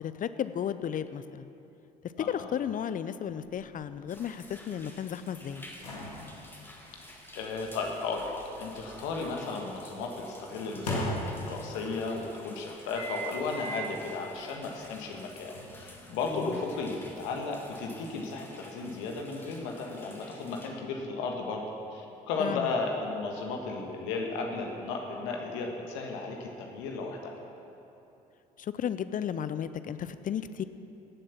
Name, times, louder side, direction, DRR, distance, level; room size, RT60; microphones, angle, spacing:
voice 1, 0.0-1.5 2.3-5.6 16.3-16.6 22.4-22.7 28.6-30.6, left 9 dB, 40° left, 13 dB, 0.6 m, -34 dB
voice 2, 2.2-2.5 7.3-8.2 8.6-21.6 21.9-27.3, left 4 dB, 70° left, 1 dB, 1.5 m, -34 dB
sound 1, 3.4-9.4 10.5-11.8 12.9-14.0 14.5-14.6 15.5-17.2, equal, 90° left, 1.8 m, -39 dB
sound 2, 4.1-20.7, left 1 dB, 10° left, 2.3 m, -52 dB
16.0 x 7.7 x 5.9 m, 2.9 s
hypercardioid pair, 50°, 21 cm